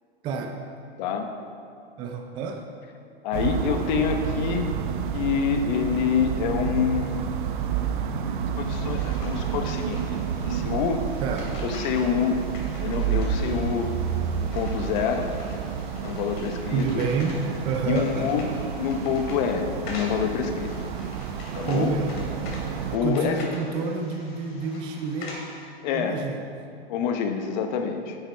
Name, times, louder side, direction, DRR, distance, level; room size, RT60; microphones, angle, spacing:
voice 1, 0.2-0.6 2.0-2.7 11.2-11.5 16.7-18.3 21.6-22.1 23.0-25.4 25.9-26.4, right 4 dB, 15° right, 3 dB, 0.4 m, -28 dB
voice 2, 1.0-1.3 3.2-4.7 5.1-7.2 8.6-10.2 10.5-11.0 11.6-12.4 12.8-13.9 14.4-15.3 16.0-17.0 17.9-18.5 18.8-20.7 21.6-21.9 22.9-23.5 25.8-26.2 26.9-28.2, left 7 dB, 45° left, 6 dB, 1.0 m, -26 dB
sound 1, 3.3-23.0, right 7 dB, 50° right, 0.8 m, -30 dB
sound 2, 8.6-25.7, left 2 dB, 70° left, 2.7 m, -44 dB
10.5 x 7.3 x 4.6 m, 2.4 s
hypercardioid pair, 150°, 31 cm